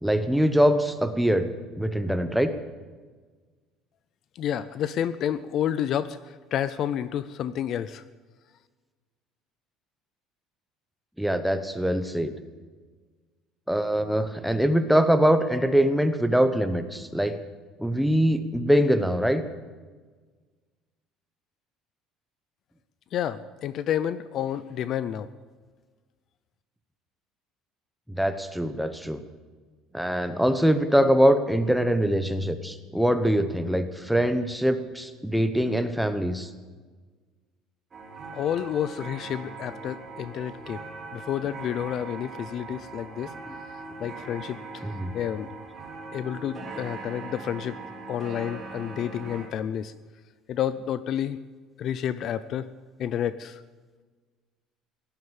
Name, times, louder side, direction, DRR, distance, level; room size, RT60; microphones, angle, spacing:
voice 1, 0.0-1.5 1.8-2.5 11.2-12.3 13.7-17.4 17.8-19.4 28.1-29.2 29.9-36.5 43.5-43.6 44.8-45.1, equal, ahead, 8 dB, 0.9 m, -23 dB
voice 2, 4.4-8.0 23.1-25.3 38.3-40.9 41.1-43.3 44.0-44.8 45.1-45.5 46.1-47.8 48.1-49.9 50.5-51.4 51.8-52.7 53.0-53.6, left 10 dB, 40° left, 15 dB, 0.5 m, -30 dB
sound 1, 37.9-49.5, right 3 dB, 25° right, 2.5 m, -40 dB
17.5 x 11.5 x 7.3 m, 1.4 s
cardioid pair, 170°, 0 cm